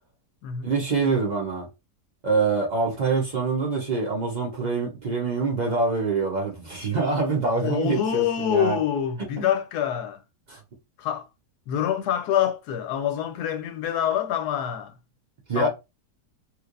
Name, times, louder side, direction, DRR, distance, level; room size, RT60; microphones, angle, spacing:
voice 1, 0.6-1.7 2.2-8.8 9.4-9.5 10.5-10.6 15.5-15.7, right 4 dB, 85° right, 0.4 m, -25 dB
voice 2, 7.6-10.2 11.0-11.3 11.7-14.9 15.5-15.7, left 9 dB, 75° left, 1.1 m, -26 dB
3.3 x 3.0 x 2.4 m
omnidirectional pair, 1.8 m